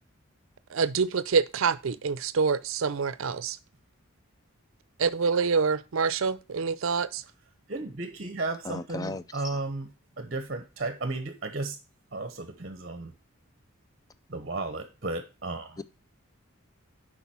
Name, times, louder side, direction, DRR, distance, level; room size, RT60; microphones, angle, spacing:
voice 1, 0.7-3.6 5.0-7.2, right 5 dB, 70° right, 0.5 m, -26 dB
voice 2, 7.7-9.9 10.2-11.8 12.1-13.1 14.3-15.8, right 2 dB, 45° right, 0.8 m, -34 dB
voice 3, 8.6-9.6 15.8-15.9, left 3 dB, 15° left, 0.3 m, -36 dB
7.1 x 5.0 x 5.9 m
head